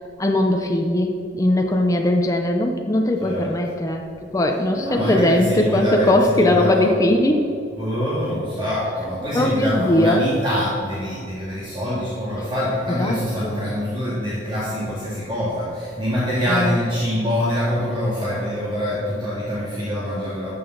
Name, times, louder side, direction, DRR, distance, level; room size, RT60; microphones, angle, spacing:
voice 1, 0.2-4.0 4.3-7.4 9.3-10.2 13.0-13.2 13.4-13.6 16.5-16.8, left 1 dB, 20° left, 2 dB, 0.6 m, -19 dB
voice 2, 3.2-3.5 4.7-6.9 7.8-20.5, equal, 25° right, -8 dB, 2.0 m, -25 dB
12.5 x 7.0 x 3.9 m, 2.5 s
head